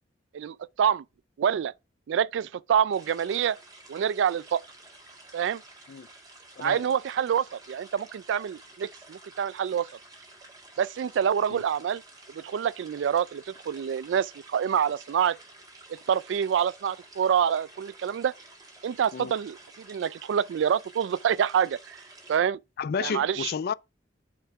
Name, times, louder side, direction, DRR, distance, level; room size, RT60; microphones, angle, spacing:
voice 1, 0.3-1.0 1.4-1.7 2.1-3.6 3.9-4.6 5.3-5.6 6.6-9.9 10.8-12.0 12.3-15.4 16.1-18.3 18.8-22.0 22.3-22.6 23.0-23.5, right 8 dB, 70° right, 0.3 m, -26 dB
sound 1, 2.9-22.4, right 2 dB, 20° right, 1.9 m, -51 dB
voice 2, 22.8-23.7, left 6 dB, 55° left, 0.4 m, -31 dB
8.3 x 3.4 x 5.7 m
head